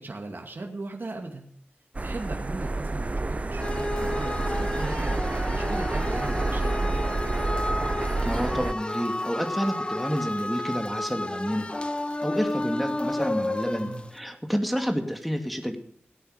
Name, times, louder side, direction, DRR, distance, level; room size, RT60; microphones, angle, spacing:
voice 1, 0.0-1.5 2.0-7.0 13.8-14.1, right 2 dB, 60° right, 2 dB, 2.4 m, -37 dB
sound 1, 1.9-8.7, right 2 dB, 35° right, 0.5 m, -28 dB
sound 2, 3.6-14.2, left 1 dB, 25° left, 1.1 m, -31 dB
voice 2, 8.2-11.7 12.2-15.8, equal, ahead, 4 dB, 2.4 m, -29 dB
17.5 x 8.8 x 5.1 m, 0.68 s
wide cardioid pair, 65°, 4 cm